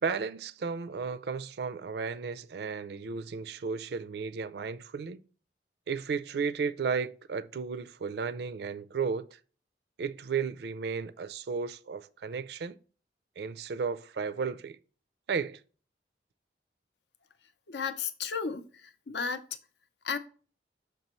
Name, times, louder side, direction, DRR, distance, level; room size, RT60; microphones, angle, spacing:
voice 1, 0.0-5.2 5.9-9.4 10.0-12.7 13.4-14.8 15.3-15.6, right 5 dB, 60° right, 0.4 m, -34 dB
voice 2, 17.7-19.4 20.0-20.2, left 5 dB, 70° left, 0.6 m, -34 dB
5.9 x 5.3 x 3.0 m
head